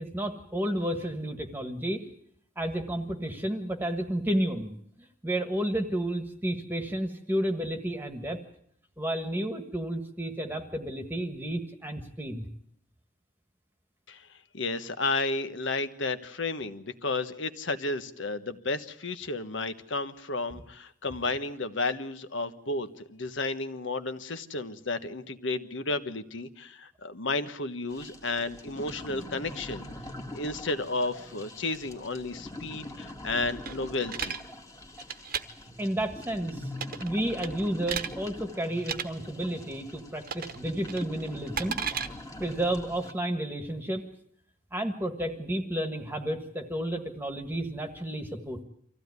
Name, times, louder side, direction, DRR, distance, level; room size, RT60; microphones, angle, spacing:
voice 1, 0.0-2.0 2.5-8.4 9.0-12.4 35.8-36.7 37.0-41.8 42.4-44.0 44.7-48.6, right 1 dB, 10° right, 6 dB, 1.5 m, -31 dB
voice 2, 14.5-29.9 30.3-34.4, left 3 dB, 70° left, 11 dB, 1.3 m, -32 dB
sound 1, 27.9-43.1, left 1 dB, 15° left, 1.9 m, -43 dB
sound 2, 33.7-34.4 35.0-35.4 36.7-37.1 37.4-38.1 38.8-39.0 40.3-40.6 40.9-42.1, right 7 dB, 45° right, 1.2 m, -33 dB
25.0 x 15.5 x 9.6 m, 0.70 s
head